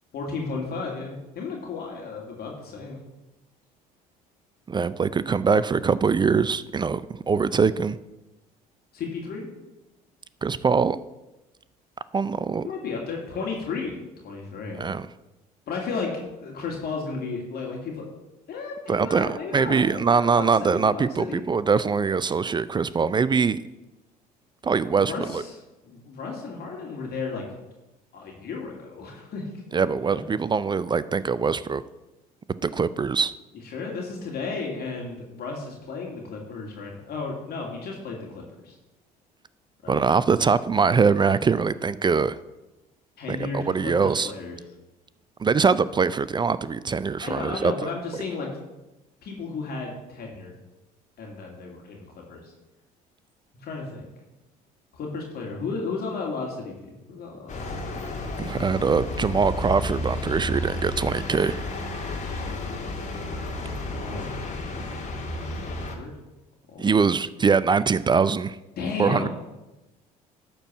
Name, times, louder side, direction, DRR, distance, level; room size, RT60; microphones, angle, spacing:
voice 1, 0.1-3.0 8.9-9.5 12.6-13.9 14.2-14.8 15.7-16.1 16.4-18.1 18.5-21.4 25.1-27.4 28.1-29.5 30.0-30.2 33.6-38.8 39.8-40.1 43.2-44.6 47.2-48.5 49.2-50.5 51.2-52.5 53.6-54.1 54.9-57.6 62.2-62.7 63.8-64.4 65.6-66.1 66.7-67.0 68.8-69.3, left 4 dB, 55° left, -1 dB, 2.3 m, -34 dB
voice 2, 4.7-8.0 10.4-11.0 12.1-12.7 14.8-15.1 18.9-23.6 24.6-25.4 29.7-31.8 32.6-33.3 39.9-42.4 43.3-44.3 45.4-47.9 58.4-61.6 66.8-68.6 69.0-69.3, right 5 dB, 25° right, 16 dB, 0.4 m, -23 dB
sound 1, 57.5-66.0, left 2 dB, 35° left, 2.2 m, -32 dB
11.5 x 4.6 x 7.2 m, 1.0 s
hypercardioid pair, 65°, 20 cm